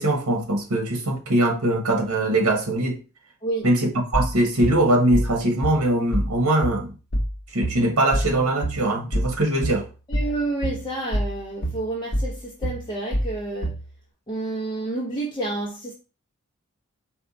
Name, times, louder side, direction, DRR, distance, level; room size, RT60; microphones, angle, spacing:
voice 1, 0.0-3.0 3.6-6.9 7.5-9.9, right 1 dB, 70° right, 1.1 m, -22 dB
sound 1, 4.1-13.9, equal, 55° left, 0.8 m, -27 dB
voice 2, 10.1-13.8 14.3-15.9, right 2 dB, 20° left, 0.7 m, -29 dB
4.3 x 2.3 x 3.9 m
head